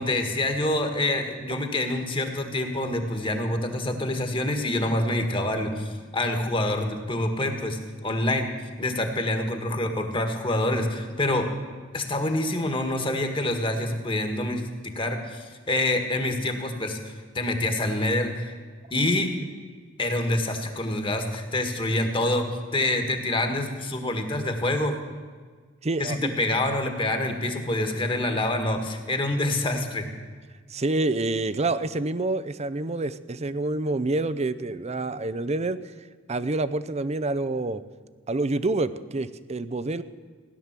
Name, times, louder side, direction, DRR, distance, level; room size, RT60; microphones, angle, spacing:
voice 1, 0.0-8.5 8.8-11.5 11.9-14.6 14.9-18.5 18.9-19.3 20.0-22.4 22.7-24.9 26.0-30.0, left 1 dB, 25° left, 6 dB, 1.7 m, -26 dB
voice 2, 25.8-26.3 30.7-35.9 36.3-37.8 38.3-40.0, right 2 dB, 35° right, 14 dB, 0.6 m, -27 dB
16.5 x 11.0 x 7.4 m, 1.6 s
head